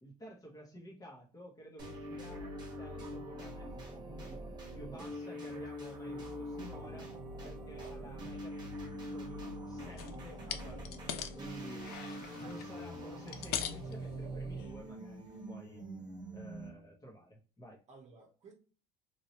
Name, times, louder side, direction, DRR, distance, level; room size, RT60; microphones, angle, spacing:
voice 1, 0.0-4.5 4.7-7.1 7.4-11.9 12.4-15.8 16.3-17.8, equal, 20° left, -2 dB, 1.2 m, -52 dB
sound 1, 1.8-16.9, equal, 25° right, 1.4 m, -44 dB
sound 2, 10.0-10.2 10.5-11.4 11.7-12.7 13.2-13.9 14.6-14.7 15.2-15.3, left 10 dB, 60° left, 0.4 m, -40 dB
voice 2, 12.0-12.8 17.9-18.5, right 3 dB, 40° right, 0 dB, 1.0 m, -56 dB
3.1 x 2.7 x 2.8 m, 0.38 s
cardioid pair, 130°, 18 cm